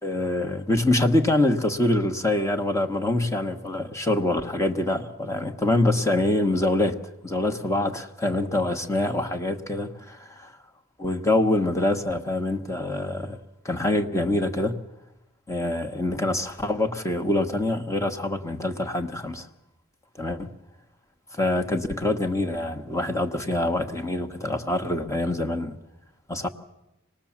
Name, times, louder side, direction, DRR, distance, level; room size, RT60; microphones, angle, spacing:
voice 1, 0.0-10.5 11.0-13.4 13.6-14.8 15.5-19.5 20.2-20.5 21.3-25.8 26.3-26.5, left 1 dB, 15° left, 1.3 m, -25 dB
27.0 x 19.0 x 7.3 m
head